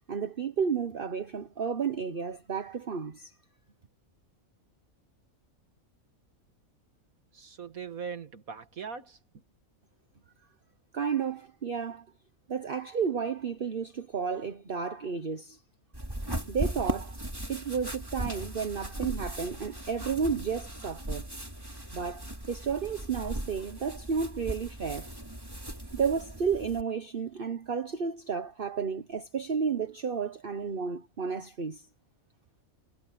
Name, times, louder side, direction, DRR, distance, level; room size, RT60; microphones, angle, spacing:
voice 1, 0.0-3.3 10.9-12.0 12.5-15.6 16.5-17.2 17.5-21.3 21.9-25.1 25.9-31.8, right 6 dB, 40° right, 1.2 m, -32 dB
voice 2, 7.3-9.4, right 6 dB, 80° right, 2.5 m, -41 dB
sound 1, 15.9-26.8, right 1 dB, 15° right, 2.8 m, -38 dB
omnidirectional pair, 1.4 m